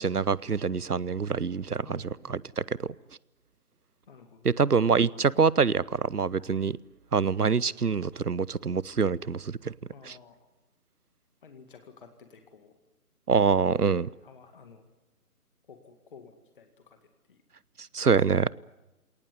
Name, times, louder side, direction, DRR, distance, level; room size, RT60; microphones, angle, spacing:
voice 1, 0.0-2.9 4.4-6.8 7.1-9.7 10.0-10.2 13.3-14.1 17.9-18.5, right 5 dB, 85° right, 23 dB, 0.8 m, -25 dB
voice 2, 1.8-2.3 4.1-4.4 9.9-10.3 11.4-12.7 13.9-14.8 15.7-17.0 17.3-17.4, left 5 dB, 35° left, 7 dB, 2.2 m, -52 dB
28.0 x 18.5 x 9.8 m, 1.0 s
figure-of-eight pair, 145°, 45 cm